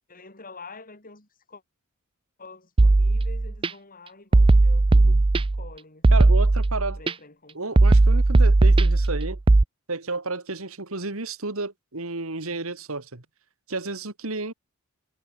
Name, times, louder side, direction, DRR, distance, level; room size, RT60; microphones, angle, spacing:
voice 1, 0.1-1.6 2.4-5.2 5.5-6.3 7.0-7.8, left 3 dB, 40° left, 5.5 m, -47 dB
sound 1, 2.8-3.7 4.3-5.7 6.0-7.1 7.8-9.6, right 2 dB, 25° right, 0.4 m, -17 dB
voice 2, 4.9-5.2 6.1-7.0 7.5-9.4 9.9-13.2 13.7-14.5, right 3 dB, 70° right, 2.4 m, -32 dB
head